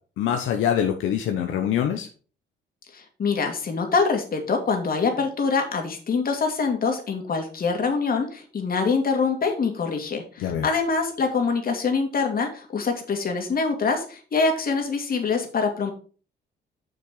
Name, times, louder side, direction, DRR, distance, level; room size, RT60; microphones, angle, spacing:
voice 1, 0.2-2.1 10.4-10.7, left 9 dB, 80° left, 4 dB, 1.0 m, -24 dB
voice 2, 2.9-15.9, left 4 dB, 50° left, 3 dB, 2.4 m, -24 dB
6.7 x 6.4 x 4.9 m, 0.39 s
cardioid pair, 90°, 20 cm